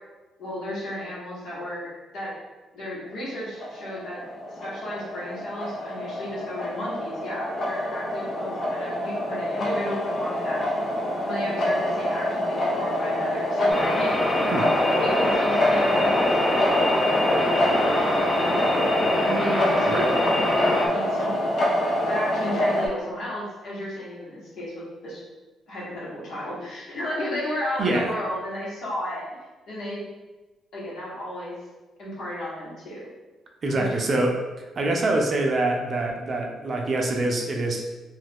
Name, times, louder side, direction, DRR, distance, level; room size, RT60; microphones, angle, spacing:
voice 1, 0.4-2.3 2.7-4.2 4.5-10.9 11.2-14.1 15.0-16.8 17.2-18.9 19.2-21.4 22.1-25.2 25.7-29.2 29.7-30.0 30.7-31.6 32.0-33.1 33.7-34.1, left 1 dB, 70° left, -7 dB, 1.3 m, -33 dB
sound 1, 3.5-22.9, left 1 dB, 50° left, 0.7 m, -26 dB
sound 2, 13.7-20.9, left 1 dB, 15° left, 0.5 m, -24 dB
voice 2, 27.8-28.1 33.6-37.8, right 2 dB, 45° right, 1 dB, 0.5 m, -25 dB
2.6 x 2.4 x 3.4 m, 1.2 s
cardioid pair, 90°, 0 cm